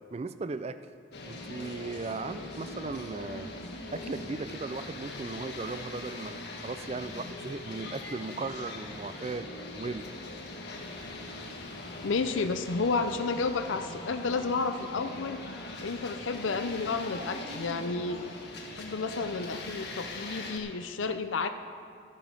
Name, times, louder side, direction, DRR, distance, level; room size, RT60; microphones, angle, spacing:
voice 1, 0.1-0.8 1.3-3.5 3.9-10.0, right 3 dB, 30° right, 12 dB, 0.4 m, -37 dB
sound 1, 1.1-20.6, left 2 dB, 55° left, 1.5 m, -41 dB
voice 2, 12.0-15.4 15.8-18.2 18.8-21.5, left 4 dB, 80° left, 8 dB, 0.6 m, -31 dB
13.0 x 11.0 x 5.2 m, 2.3 s
head